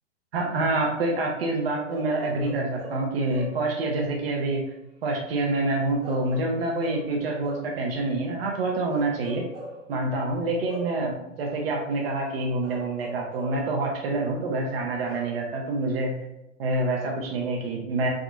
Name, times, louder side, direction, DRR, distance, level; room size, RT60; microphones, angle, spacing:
voice 1, 0.3-4.7 5.0-9.4 9.9-16.1 16.6-18.1, right 2 dB, 50° right, 0 dB, 0.6 m, -27 dB
Bark / Livestock farm animals working animals, 1.9-3.7 6.0-7.8 8.9-9.9 10.7-11.1 12.6-13.7 15.0-15.4, right 1 dB, 25° right, 0.9 m, -41 dB
3.5 x 2.5 x 2.5 m, 0.90 s
figure-of-eight pair, 100°, 38 cm